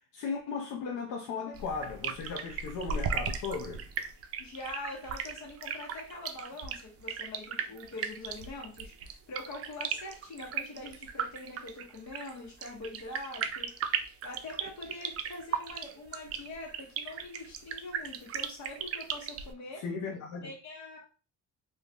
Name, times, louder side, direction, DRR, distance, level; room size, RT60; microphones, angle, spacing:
voice 1, 0.1-3.8 19.8-20.5, left 5 dB, 85° left, 0.5 m, -36 dB
sound 1, 1.5-19.5, right 7 dB, 50° right, 0.4 m, -36 dB
voice 2, 4.4-19.8 20.4-21.0, left 2 dB, 70° left, 1.3 m, -44 dB
2.7 x 2.3 x 3.4 m
cardioid pair, 90°, 30 cm